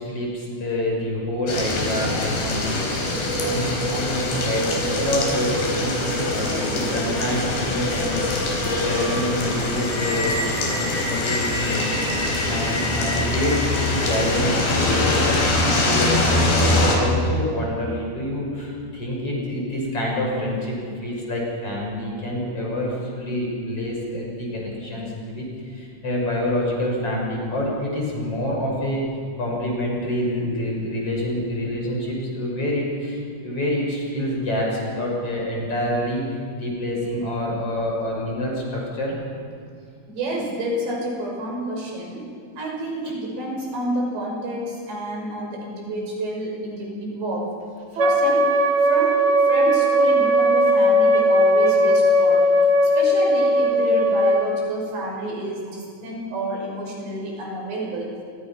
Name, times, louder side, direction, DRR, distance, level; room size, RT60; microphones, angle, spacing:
voice 1, 0.0-2.8 3.4-10.3 10.7-12.1 12.4-15.3 15.6-29.1 29.4-36.3 36.6-39.2, left 1 dB, 35° left, -2 dB, 7.0 m, -27 dB
Train Going Past In The Rain, 1.5-17.0, left 2 dB, 75° left, 6.1 m, -23 dB
voice 2, 40.1-42.3 42.6-47.5 48.0-48.5 48.8-52.4 52.9-58.1, right 1 dB, 85° right, -1 dB, 8.0 m, -29 dB
Wind instrument woodwind instrument, 48.0-54.5, equal, 60° right, 1.0 m, -18 dB
28.5 x 24.0 x 5.8 m, 2.3 s
omnidirectional pair, 4.9 m